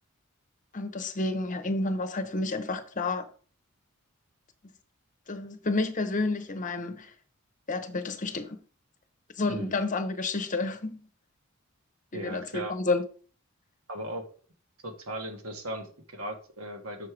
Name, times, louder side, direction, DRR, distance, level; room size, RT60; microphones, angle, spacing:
voice 1, 0.7-3.3 5.3-7.1 7.7-8.6 9.4-11.0 12.1-13.0, left 3 dB, 35° left, 0.9 m, -30 dB
voice 2, 9.5-9.8 12.1-12.7 13.9-14.2 14.8-17.1, right 1 dB, 85° right, 1.5 m, -37 dB
6.6 x 4.7 x 5.0 m
head